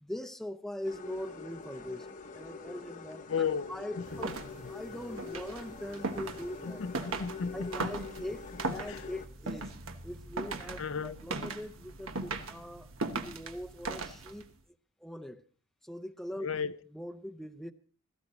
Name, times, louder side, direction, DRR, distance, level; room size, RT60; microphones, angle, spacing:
voice 1, 0.0-2.1 2.3-4.3 4.6-6.8 7.5-9.7 10.0-12.9 13.2-14.5 15.0-15.4 15.8-16.5 16.9-17.7, left 1 dB, ahead, 0.6 m, -42 dB
sound 1, 0.8-9.3, left 4 dB, 40° left, 0.9 m, -45 dB
voice 2, 3.3-3.7 6.6-7.9 8.9-9.0 10.8-11.2 16.4-16.8, left 6 dB, 65° left, 0.6 m, -34 dB
sound 2, 4.0-14.5, right 3 dB, 80° right, 1.3 m, -39 dB
17.0 x 14.5 x 3.1 m
head